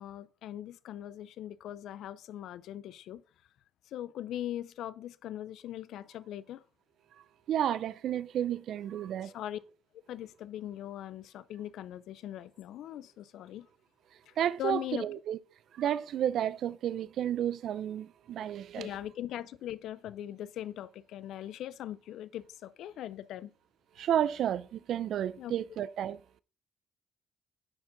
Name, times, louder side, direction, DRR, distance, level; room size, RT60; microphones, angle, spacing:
voice 1, 0.0-3.2 3.9-6.6 9.2-9.6 10.1-13.7 14.3-14.4 14.6-15.1 18.8-23.5 25.4-25.5, left 12 dB, 80° left, 0.4 m, -40 dB
voice 2, 7.5-9.3 14.4-15.4 15.7-18.9 24.0-26.2, right 10 dB, 75° right, 0.4 m, -31 dB
10.5 x 4.5 x 3.8 m
cardioid pair, 90°, 0 cm